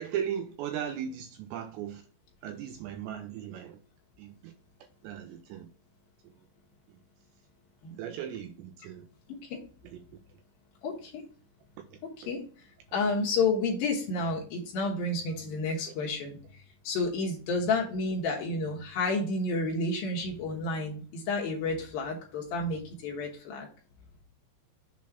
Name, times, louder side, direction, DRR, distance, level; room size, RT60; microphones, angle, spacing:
voice 1, 0.0-2.0 2.4-3.8 4.2-4.5 5.0-5.7 8.0-9.1 9.8-10.0 11.9-12.0 16.0-16.1, right 9 dB, 85° right, 7 dB, 2.5 m, -37 dB
voice 2, 9.3-9.6 10.8-11.2 12.3-12.4 12.9-16.4 16.8-23.7, left 3 dB, 70° left, 0 dB, 2.3 m, -30 dB
7.2 x 3.1 x 5.8 m, 0.41 s
omnidirectional pair, 5.6 m